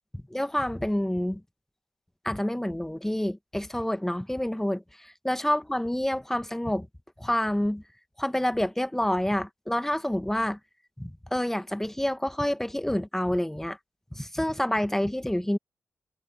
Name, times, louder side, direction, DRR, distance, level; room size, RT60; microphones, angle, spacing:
voice 1, 0.3-1.4 2.2-4.8 5.2-6.9 7.2-7.8 8.2-10.6 11.0-13.8 14.1-15.6, left 1 dB, 10° left, 1.5 m, -28 dB
supercardioid pair, 45°, 4 cm